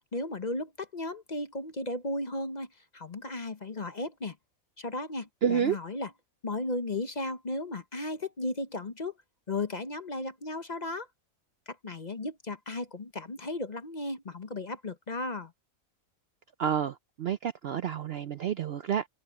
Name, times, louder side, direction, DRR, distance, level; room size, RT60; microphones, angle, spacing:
voice 1, 0.1-4.4 4.8-6.1 6.4-9.1 9.5-11.1 11.7-15.5, left 2 dB, 35° left, 1.0 m, -35 dB
voice 2, 5.4-5.8 16.6-19.1, right 8 dB, 60° right, 0.7 m, -29 dB
omnidirectional pair, 1.5 m